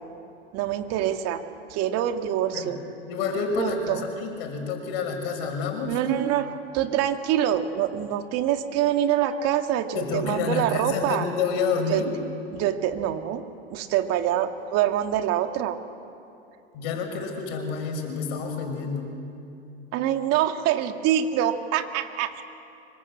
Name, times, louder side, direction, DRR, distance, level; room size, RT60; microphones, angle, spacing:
voice 1, 0.5-1.4 1.7-2.8 3.6-4.0 5.9-11.3 11.9-12.0 12.5-13.4 13.7-15.8 19.9-22.4, right 11 dB, 50° right, 6 dB, 2.1 m, -25 dB
voice 2, 3.1-6.0 9.9-12.1 16.7-19.1, left 5 dB, 65° left, 4 dB, 5.9 m, -28 dB
25.5 x 22.0 x 8.7 m, 2.7 s
hypercardioid pair, 95°, 32 cm